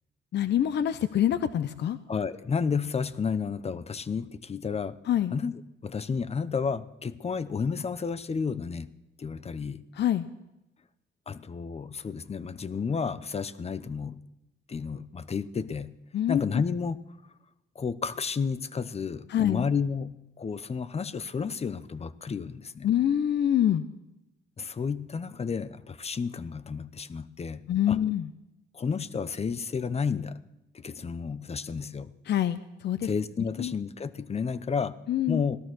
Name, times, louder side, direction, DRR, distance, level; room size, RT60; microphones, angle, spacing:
voice 1, 0.3-2.0 5.1-5.3 10.0-10.3 16.1-16.6 19.3-19.6 22.8-23.8 27.7-28.3 32.3-33.1 33.6-33.7 35.1-35.4, left 10 dB, 60° left, 12 dB, 0.7 m, -25 dB
voice 2, 2.1-5.0 5.3-5.5 5.8-8.9 9.2-9.8 11.3-14.2 14.7-15.9 16.3-17.0 17.7-20.1 20.4-22.9 24.6-27.6 27.9-28.0 28.7-30.4 30.7-32.1 33.0-35.0 35.3-35.6, left 5 dB, 30° left, 15 dB, 0.9 m, -31 dB
17.5 x 12.5 x 6.2 m, 0.95 s
cardioid pair, 90°, 20 cm